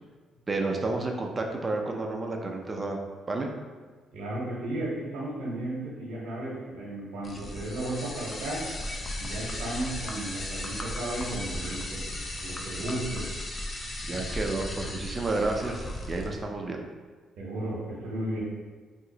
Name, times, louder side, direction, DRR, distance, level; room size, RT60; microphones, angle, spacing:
voice 1, 0.5-3.0 3.3-3.5 14.0-16.9, right 2 dB, 30° right, 2 dB, 0.5 m, -31 dB
voice 2, 4.1-8.7 9.2-12.0 12.4-13.3 17.4-18.4, right 1 dB, 85° right, -6 dB, 0.8 m, -34 dB
sound 1, 7.2-16.3, left 1 dB, 30° left, 0.5 m, -36 dB
2.8 x 2.5 x 3.8 m, 1.4 s
cardioid pair, 90°, 0 cm